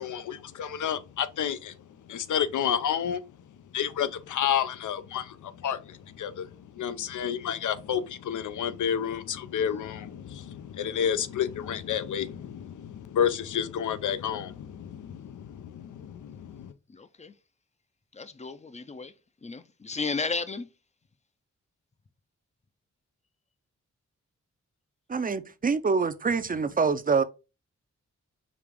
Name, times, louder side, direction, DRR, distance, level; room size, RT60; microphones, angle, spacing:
voice 1, 0.0-1.7 2.1-3.2 3.7-6.5 6.8-16.7, left 8 dB, 80° left, 0.5 m, -30 dB
voice 2, 16.6-17.3 18.1-19.1 19.4-20.7, left 4 dB, 25° left, 0.5 m, -34 dB
voice 3, 25.1-27.2, right 5 dB, 30° right, 0.5 m, -25 dB
5.1 x 2.4 x 3.3 m
cardioid pair, 60°, 30 cm